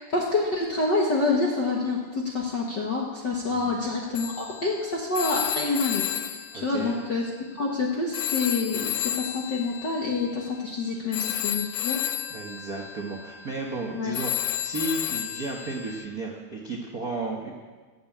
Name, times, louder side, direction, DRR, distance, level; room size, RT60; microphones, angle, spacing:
voice 1, 0.0-12.0 13.9-14.2, left 3 dB, 55° left, -2 dB, 1.2 m, -27 dB
voice 2, 3.5-3.8 6.5-7.0 12.3-17.5, right 2 dB, 80° right, -1 dB, 0.8 m, -34 dB
Telephone, 4.1-7.8 8.1-16.1, left 12 dB, 75° left, 2.1 m, -32 dB
15.0 x 7.5 x 8.6 m, 1.4 s
omnidirectional pair, 4.2 m